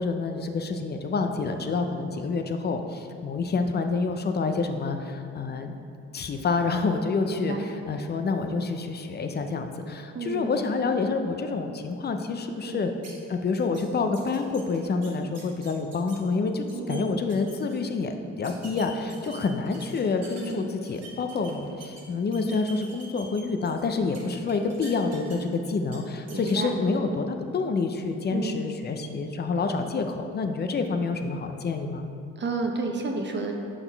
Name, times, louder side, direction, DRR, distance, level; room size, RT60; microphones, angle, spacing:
voice 1, 0.0-5.7 6.1-12.9 13.3-32.1, left 4 dB, 35° left, 6 dB, 0.5 m, -28 dB
voice 2, 7.3-7.7 10.1-10.7 12.6-12.8 16.7-17.2 20.4-20.7 26.3-26.8 28.3-28.6 32.4-33.5, right 3 dB, 35° right, 2 dB, 0.8 m, -31 dB
sound 1, 13.0-13.1 13.6-13.8 14.1-16.2 16.5-17.0 17.3-17.8 18.4-20.5 20.9-22.0 22.3-23.8 24.1-25.5 25.9-26.0 26.3-26.5, right 3 dB, 55° right, 1.4 m, -46 dB
6.2 x 3.9 x 4.5 m, 2.5 s
cardioid pair, 90°, 30 cm